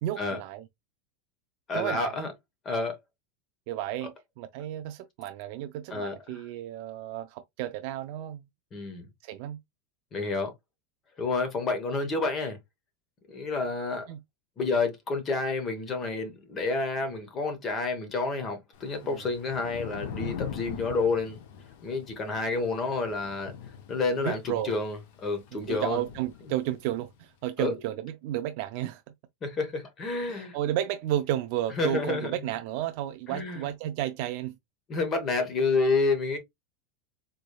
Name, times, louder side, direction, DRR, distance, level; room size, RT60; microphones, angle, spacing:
voice 1, 0.0-0.6 1.7-2.2 3.7-8.4 9.2-9.6 14.1-14.2 19.0-19.2 24.2-24.7 25.5-29.0 30.3-34.5, right 13 dB, 45° right, 0.3 m, -32 dB
voice 2, 1.7-2.3 2.6-3.0 5.9-6.2 8.7-9.1 10.1-10.5 11.2-12.6 13.3-14.1 14.6-21.4 21.8-23.5 23.9-26.0 27.6-27.7 29.4-30.6 31.8-32.3 33.3-33.7 34.9-36.4, left 3 dB, 20° left, 0.9 m, -29 dB
Thunder / Rain, 18.7-27.1, left 8 dB, 55° left, 0.7 m, -42 dB
3.8 x 3.2 x 2.2 m
supercardioid pair, 175°, 0 cm